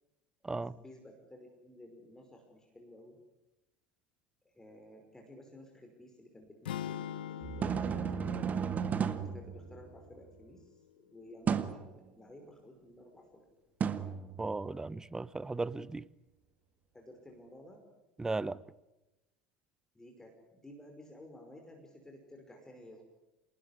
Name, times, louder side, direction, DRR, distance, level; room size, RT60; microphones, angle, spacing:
voice 1, 0.5-3.2 4.5-8.6 9.1-13.5 16.9-17.9 19.9-23.0, left 1 dB, 10° left, 5.3 m, -54 dB
sound 1, 6.7-10.8, left 10 dB, 65° left, 0.9 m, -44 dB
sound 2, 7.4-10.2 11.5-11.9 13.8-14.9, right 7 dB, 30° right, 1.8 m, -34 dB
voice 2, 14.4-16.0 18.2-18.6, right 3 dB, 10° right, 0.9 m, -36 dB
28.5 x 19.5 x 9.9 m
figure-of-eight pair, 70°, 5 cm